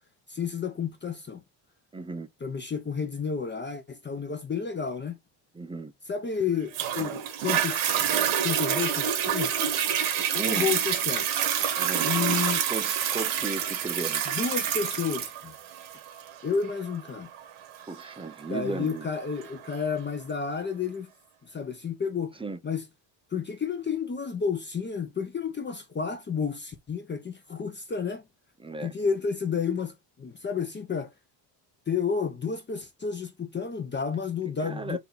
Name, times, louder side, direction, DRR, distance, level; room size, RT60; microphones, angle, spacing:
voice 1, 0.3-1.4 2.4-5.2 6.1-7.8 8.4-9.5 10.3-11.3 12.0-12.7 14.3-15.5 16.4-17.3 18.5-21.1 21.4-22.4 22.6-22.8 23.3-28.2 28.8-31.1 31.9-35.0, left 6 dB, 20° left, 0.7 m, -31 dB
voice 2, 1.9-2.3 5.5-5.9 10.2-10.7 11.8-12.1 12.7-14.2 17.9-19.1 22.4-22.6 28.6-28.9 34.6-35.0, right 3 dB, 10° right, 0.4 m, -35 dB
Toilet flush, 6.7-19.8 20.4-20.5, right 9 dB, 75° right, 1.4 m, -28 dB
4.1 x 2.8 x 3.8 m
cardioid pair, 100°, 50 cm